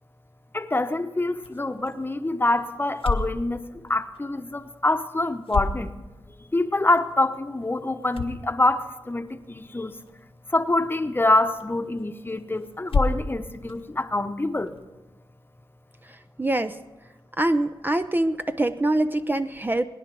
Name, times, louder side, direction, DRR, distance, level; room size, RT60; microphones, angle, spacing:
voice 1, 0.5-3.6 3.9-5.9 6.5-9.9 10.5-14.7, left 2 dB, 25° left, 1.0 m, -25 dB
sound 1, 1.3-14.9, left 3 dB, 85° left, 1.2 m, -35 dB
voice 2, 16.0-16.8 17.4-19.9, right 1 dB, 20° right, 0.6 m, -24 dB
20.0 x 10.5 x 6.1 m
cardioid pair, 60°, 9 cm